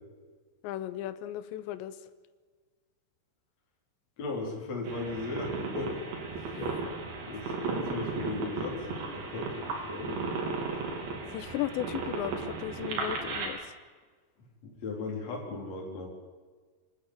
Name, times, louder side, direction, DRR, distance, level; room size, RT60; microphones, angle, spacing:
voice 1, 0.6-2.0 6.5-6.9 11.3-13.7, left 13 dB, 80° left, 14 dB, 3.2 m, -36 dB
voice 2, 4.2-6.1 6.4-6.6 7.3-10.3 14.6-16.1, left 3 dB, 40° left, -1 dB, 4.6 m, -37 dB
sound 1, 4.8-13.5, right 4 dB, 75° right, 5.7 m, -35 dB
25.5 x 12.5 x 9.0 m, 1.5 s
omnidirectional pair, 5.2 m